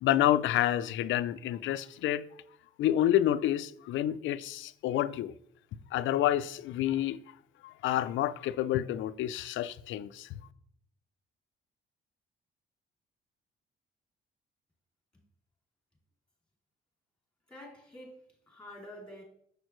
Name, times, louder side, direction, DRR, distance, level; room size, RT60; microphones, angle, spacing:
voice 1, 0.0-2.2 2.8-5.3 5.9-7.4 7.6-10.3, left 12 dB, 75° left, 0.4 m, -29 dB
voice 2, 17.5-19.2, left 1 dB, 5° left, 2.8 m, -48 dB
6.6 x 6.3 x 3.1 m
cardioid pair, 90°, 20 cm